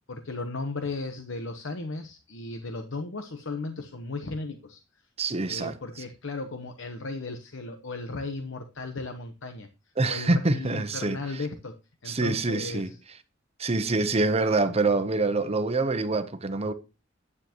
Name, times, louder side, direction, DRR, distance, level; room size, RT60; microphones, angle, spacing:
voice 1, 0.1-4.8 5.4-9.7 10.1-11.8 12.0-13.0, left 3 dB, 75° left, 1.0 m, -36 dB
voice 2, 5.2-5.7 10.0-11.2 12.1-12.9 13.6-16.7, right 3 dB, 30° right, 0.8 m, -25 dB
9.7 x 9.5 x 3.0 m
head